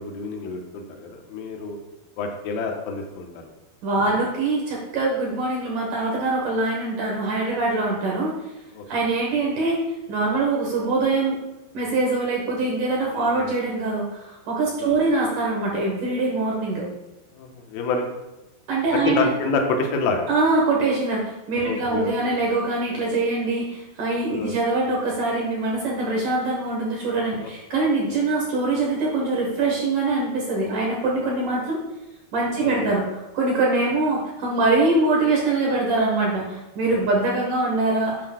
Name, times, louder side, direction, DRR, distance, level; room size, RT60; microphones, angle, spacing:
voice 1, 0.0-1.8 2.2-3.3 8.8-8.9 13.1-13.5 14.8-14.9 17.4-18.1 19.1-20.2 21.6-22.4 24.3-24.6 27.4-27.5 32.6-32.9, left 4 dB, 75° left, 2 dB, 2.7 m, -28 dB
voice 2, 3.8-8.5 8.9-11.4 11.7-16.9 18.7-19.3 20.3-31.8 32.3-38.3, right 2 dB, 65° right, -3 dB, 2.5 m, -23 dB
11.0 x 7.7 x 2.3 m, 0.97 s
omnidirectional pair, 4.6 m